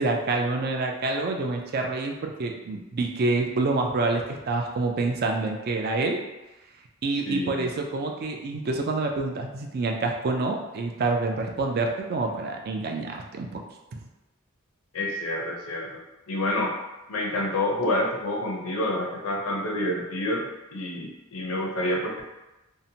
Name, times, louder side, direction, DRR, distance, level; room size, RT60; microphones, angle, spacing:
voice 1, 0.0-6.2 7.0-13.6 13.9-14.0, right 3 dB, 45° right, 2 dB, 0.4 m, -27 dB
voice 2, 7.3-7.7 14.9-16.8 17.1-20.5 20.7-22.2, left 1 dB, 75° left, 0 dB, 0.6 m, -28 dB
2.7 x 2.1 x 2.7 m, 1.0 s
head